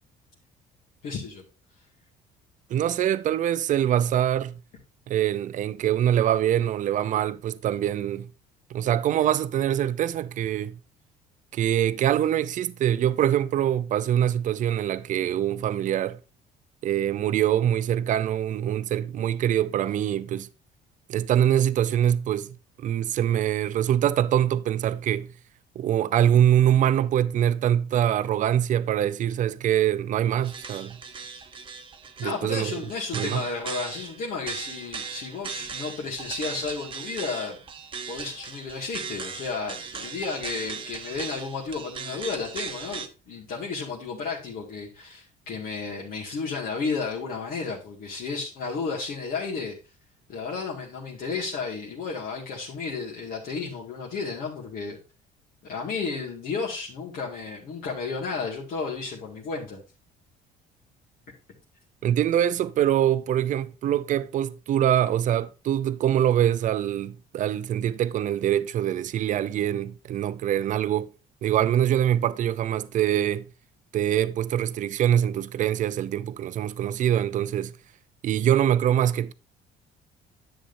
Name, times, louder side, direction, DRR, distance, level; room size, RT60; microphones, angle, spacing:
voice 1, 1.0-1.4 32.2-37.6 38.1-49.8 50.3-55.0 55.6-59.8, left 4 dB, 60° left, 2.2 m, -32 dB
voice 2, 2.7-4.5 5.1-8.3 8.7-10.8 11.5-16.2 16.8-20.5 21.1-25.3 25.8-31.0 32.2-32.8 33.1-33.4 62.0-71.1 71.4-73.5 73.9-77.7 78.2-79.3, right 10 dB, 50° right, 0.6 m, -24 dB
sound 1, 30.4-43.1, right 6 dB, 30° right, 1.0 m, -38 dB
10.0 x 7.7 x 2.7 m
cardioid pair, 120°, 17 cm